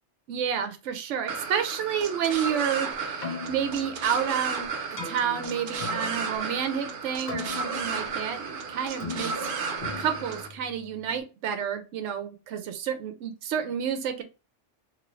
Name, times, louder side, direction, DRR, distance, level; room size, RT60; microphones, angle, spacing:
voice 1, 0.3-9.5 10.0-14.2, right 8 dB, 75° right, 7 dB, 0.9 m, -30 dB
sound 1, 1.3-10.5, right 5 dB, 55° right, 0.6 m, -33 dB
Keyboard (musical), 3.0-11.2, left 5 dB, 40° left, 0.9 m, -40 dB
3.0 x 2.6 x 3.0 m, 0.32 s
omnidirectional pair, 1.3 m